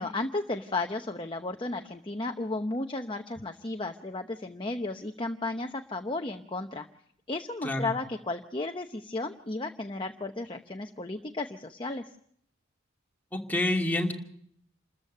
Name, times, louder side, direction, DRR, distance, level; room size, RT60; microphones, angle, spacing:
voice 1, 0.0-6.9 7.3-12.0, left 2 dB, 25° left, 5 dB, 0.9 m, -34 dB
voice 2, 13.3-14.1, left 1 dB, 10° left, 0 dB, 2.6 m, -27 dB
28.5 x 14.0 x 6.7 m, 0.67 s
head